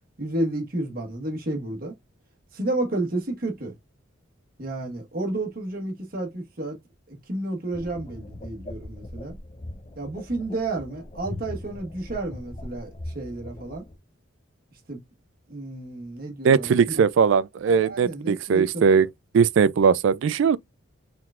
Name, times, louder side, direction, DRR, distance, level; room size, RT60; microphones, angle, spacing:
voice 1, 0.2-1.9 2.5-3.8 4.6-6.8 7.1-9.4 10.0-13.8 14.9-15.0 15.5-17.0 17.6-19.0, right 2 dB, 45° right, 1.3 m, -31 dB
sound 1, 7.7-14.0, left 1 dB, 30° left, 0.6 m, -40 dB
voice 2, 16.4-19.1 19.3-20.6, right 6 dB, 70° right, 0.3 m, -19 dB
4.6 x 3.8 x 2.3 m
head